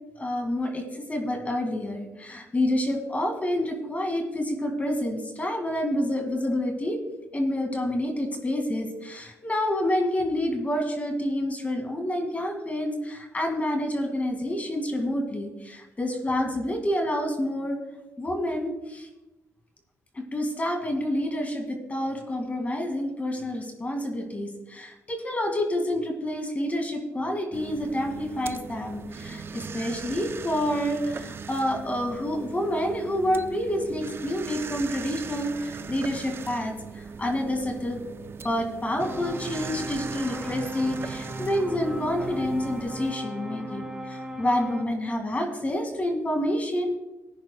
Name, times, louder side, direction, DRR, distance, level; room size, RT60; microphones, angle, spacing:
voice 1, 0.2-7.0 7.3-17.8 18.2-19.1 20.1-38.0 38.4-47.0, left 1 dB, 25° left, 4 dB, 2.1 m, -28 dB
sound 1, 27.5-43.1, right 5 dB, 40° right, 0.4 m, -40 dB
sound 2, 39.0-44.8, right 1 dB, 10° right, 1.9 m, -37 dB
19.5 x 10.0 x 2.3 m, 1.0 s
cardioid pair, 95°, 6 cm